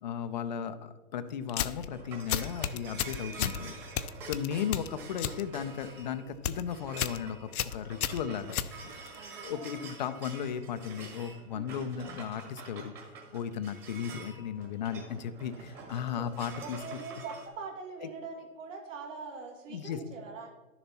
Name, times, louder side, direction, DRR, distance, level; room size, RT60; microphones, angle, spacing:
voice 1, 0.0-3.8 4.2-8.6 9.4-12.9 13.3-16.8 18.0-18.1 19.7-20.0, left 8 dB, 30° left, 11 dB, 0.5 m, -36 dB
sound 1, 1.5-1.9 2.3-3.6 4.0-5.4 5.7-6.0 6.3-6.6 7.0-7.2 7.5-9.2, left 9 dB, 75° left, 0.7 m, -32 dB
sound 2, 1.5-17.5, right 4 dB, 25° right, 1.9 m, -48 dB
voice 2, 3.3-3.7 9.1-9.8 11.5-11.9 16.0-16.3 16.6-20.5, right 4 dB, 60° right, 2 dB, 2.4 m, -43 dB
11.5 x 7.0 x 4.2 m, 1.2 s
hypercardioid pair, 145°, 43 cm